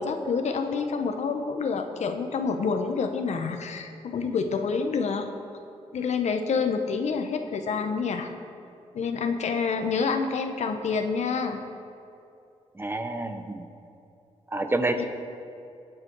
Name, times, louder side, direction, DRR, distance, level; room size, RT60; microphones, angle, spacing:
voice 1, 0.0-5.3 5.9-8.3 8.9-11.6 15.0-15.1, left 5 dB, 75° left, 6 dB, 1.1 m, -28 dB
voice 2, 12.7-13.7 14.5-15.0, right 2 dB, 20° right, 6 dB, 1.1 m, -28 dB
19.5 x 7.5 x 4.7 m, 2.6 s
cardioid pair, 80°, 12 cm